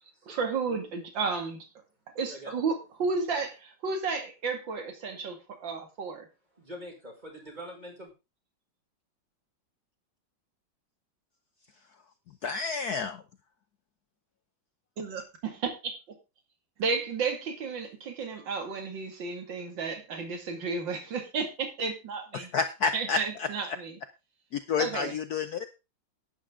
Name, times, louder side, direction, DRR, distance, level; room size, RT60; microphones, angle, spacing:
voice 1, 0.3-1.7 2.2-6.3 15.0-15.9 16.8-22.5 22.9-24.0 24.8-25.2, right 4 dB, 60° right, 5 dB, 2.9 m, -32 dB
voice 2, 6.5-8.1, equal, 20° right, -1 dB, 5.5 m, -44 dB
voice 3, 12.4-13.2 22.3-23.5 24.7-25.7, left 5 dB, 65° left, 10 dB, 1.0 m, -29 dB
11.5 x 10.5 x 3.6 m, 0.27 s
omnidirectional pair, 2.3 m